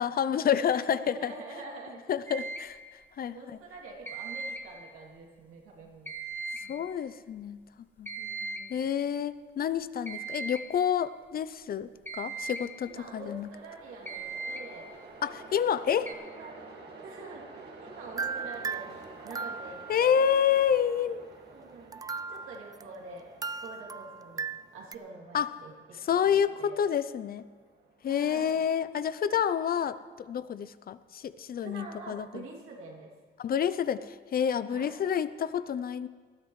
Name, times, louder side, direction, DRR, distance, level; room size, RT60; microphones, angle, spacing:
voice 1, 0.0-1.3 2.1-2.8 3.2-3.4 6.7-7.6 8.0-8.1 8.7-13.5 15.2-16.1 19.9-21.3 25.3-25.5 26.0-27.4 28.0-32.4 33.4-36.1, left 8 dB, 50° left, 15 dB, 0.5 m, -28 dB
voice 2, 0.7-2.4 3.3-6.1 6.6-6.7 8.2-8.9 12.8-14.9 15.2-15.3 16.1-16.6 17.0-20.3 21.5-22.0 22.3-23.3 23.6-26.0 26.2-26.7 28.1-28.5 31.6-33.1 34.7-34.9, right 3 dB, 85° right, -2 dB, 2.9 m, -46 dB
sound 1, 2.3-2.7 4.1-4.8 6.1-6.8 8.1-8.8 10.1-10.7 12.1-12.7 14.1-14.7 16.1-16.2, right 3 dB, 10° left, 1.6 m, -38 dB
Train, 12.1-29.3, right 3 dB, 55° right, 2.1 m, -51 dB
sound 2, 18.2-20.1 21.9-24.9, right 5 dB, 20° right, 0.3 m, -37 dB
20.0 x 13.0 x 3.2 m, 1.5 s
cardioid pair, 90°, 20 cm